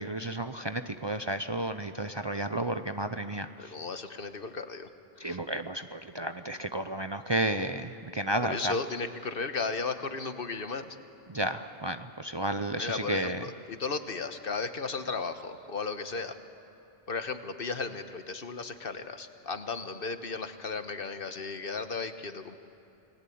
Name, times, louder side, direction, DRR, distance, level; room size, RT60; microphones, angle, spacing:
voice 1, 0.0-3.8 5.2-8.8 11.3-13.5, right 1 dB, 30° right, 8 dB, 0.6 m, -32 dB
voice 2, 3.6-4.9 5.2-5.4 7.6-7.7 8.5-10.9 12.8-16.4 17.1-22.6, left 4 dB, 65° left, 9 dB, 1.4 m, -35 dB
29.5 x 19.5 x 8.6 m, 3.0 s
omnidirectional pair, 1.0 m